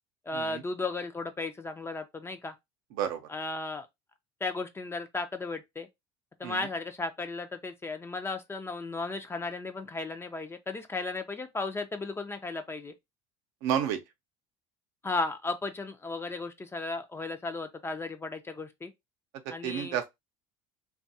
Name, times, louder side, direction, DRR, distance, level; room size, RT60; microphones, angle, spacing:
voice 1, 0.3-2.5 3.3-3.9 4.4-5.9 6.4-12.9 15.0-18.9 19.5-20.0, left 3 dB, 15° left, 0.4 m, -35 dB
voice 2, 13.6-14.0 19.6-20.1, right 9 dB, 75° right, 0.6 m, -30 dB
2.6 x 2.3 x 2.7 m
supercardioid pair, 90°, 14 cm